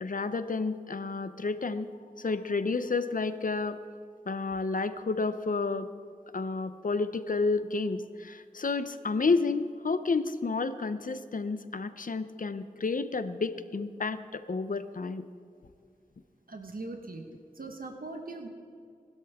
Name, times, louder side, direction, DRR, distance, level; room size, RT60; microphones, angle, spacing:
voice 1, 0.0-1.9 2.2-3.8 4.3-5.9 6.3-15.2, left 4 dB, 70° left, 12 dB, 0.7 m, -30 dB
voice 2, 16.5-18.5, right 2 dB, 85° right, 4 dB, 1.4 m, -41 dB
20.0 x 12.5 x 3.6 m, 2.2 s
wide cardioid pair, 55°, 15 cm